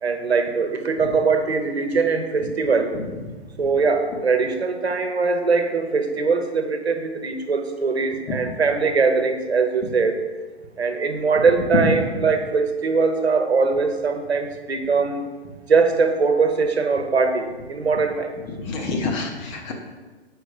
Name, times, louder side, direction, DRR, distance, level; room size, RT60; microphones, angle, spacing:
voice 1, 0.0-2.9 3.6-10.1 10.8-15.2 15.7-18.3, right 4 dB, 75° right, 5 dB, 1.0 m, -21 dB
voice 2, 18.5-19.7, left 3 dB, 25° left, 2 dB, 0.9 m, -25 dB
7.6 x 5.1 x 4.9 m, 1.3 s
figure-of-eight pair, 120°, 33 cm